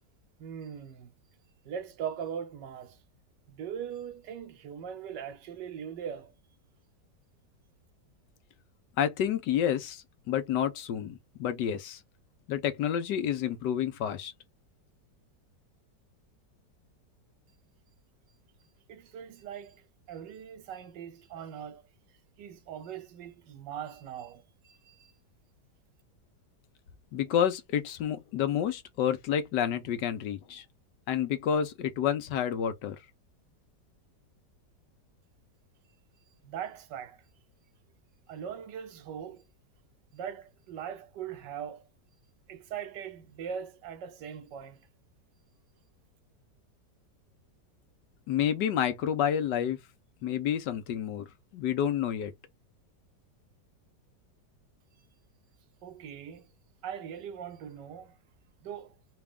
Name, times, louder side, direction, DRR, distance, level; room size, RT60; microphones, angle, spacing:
voice 1, 0.4-1.1 1.6-3.0 3.5-6.3 18.9-21.9 22.4-25.1 36.4-37.2 38.3-39.4 40.1-41.9 42.5-44.9 55.8-56.5 56.8-58.2 58.6-59.0, right 8 dB, 80° right, 1.3 m, -40 dB
voice 2, 9.0-12.0 12.5-14.3 27.1-30.6 31.1-33.0 48.3-49.8 50.2-51.3 51.5-52.3, left 9 dB, 80° left, 1.4 m, -29 dB
4.1 x 2.3 x 3.5 m
omnidirectional pair, 1.9 m